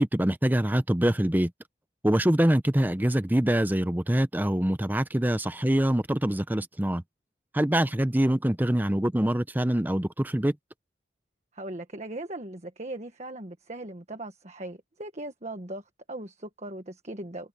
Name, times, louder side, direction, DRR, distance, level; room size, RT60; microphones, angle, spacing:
voice 1, 0.0-1.5 2.0-7.0 7.5-10.5, right 1 dB, 10° right, 0.7 m, -24 dB
voice 2, 11.5-17.5, right 1 dB, 40° right, 1.5 m, -39 dB
head